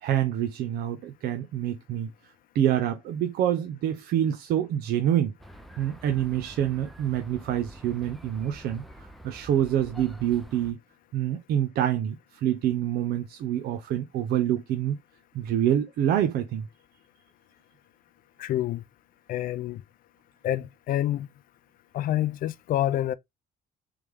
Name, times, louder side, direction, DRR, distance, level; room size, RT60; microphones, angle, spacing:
voice 1, 0.0-2.1 2.5-5.3 5.8-8.8 9.2-10.8 11.1-15.0 15.3-16.7, right 10 dB, 70° right, 0.5 m, -26 dB
sound 1, 5.4-10.7, equal, ahead, 0.5 m, -47 dB
voice 2, 18.4-18.8 19.3-19.8 20.4-21.3 21.9-23.1, left 13 dB, 55° left, 0.4 m, -27 dB
3.4 x 3.1 x 3.4 m
cardioid pair, 110°, 17 cm